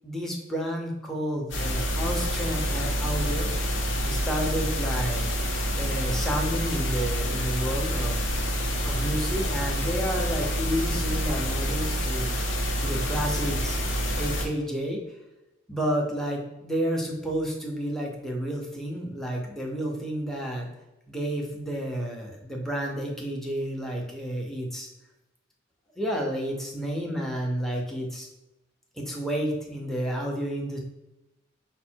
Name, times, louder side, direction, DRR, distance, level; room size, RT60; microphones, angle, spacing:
voice 1, 0.0-3.5 4.0-5.2 5.7-8.2 8.8-12.5 12.8-13.8 14.1-15.0 15.7-20.7 21.1-24.9 26.0-28.3 29.0-30.8, equal, ahead, -1 dB, 0.7 m, -30 dB
sound 1, 1.5-14.5, equal, 65° left, 0.8 m, -27 dB
5.2 x 2.1 x 4.4 m, 0.92 s
head